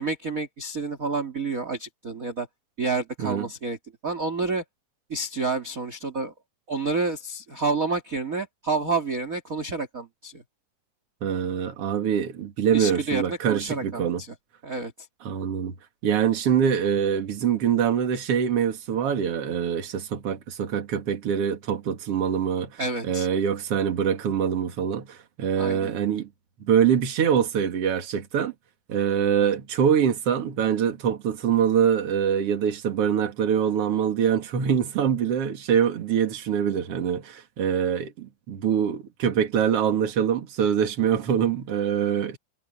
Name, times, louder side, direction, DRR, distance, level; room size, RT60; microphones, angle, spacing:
voice 1, 0.0-2.5 2.8-3.8 4.0-4.6 5.1-6.3 6.7-10.4 12.7-14.3 14.6-14.9 22.8-23.3 25.6-25.9, right 3 dB, 25° right, 2.4 m, -29 dB
voice 2, 11.2-14.2 15.2-15.7 16.0-26.3 26.6-28.5 28.9-42.4, right 8 dB, 45° right, 2.6 m, -24 dB
omnidirectional pair, 4.1 m